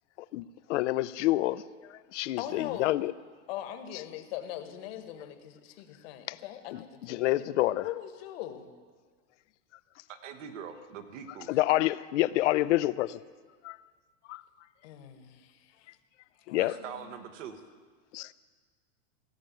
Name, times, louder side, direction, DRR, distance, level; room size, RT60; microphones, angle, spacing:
voice 1, 0.3-3.1 6.3-6.4 6.7-7.9 11.5-13.2 13.6-13.8 14.3-14.4 16.5-16.7 18.1-18.3, left 16 dB, 70° left, 17 dB, 0.5 m, -28 dB
voice 2, 2.4-3.0 3.5-7.5 7.8-8.7 14.8-15.9 16.5-17.2, left 11 dB, 50° left, 7 dB, 1.3 m, -41 dB
voice 3, 10.1-11.6 16.6-17.6, right 7 dB, 75° right, 7 dB, 1.4 m, -43 dB
16.5 x 5.8 x 9.0 m, 1.5 s
supercardioid pair, 155°, 38 cm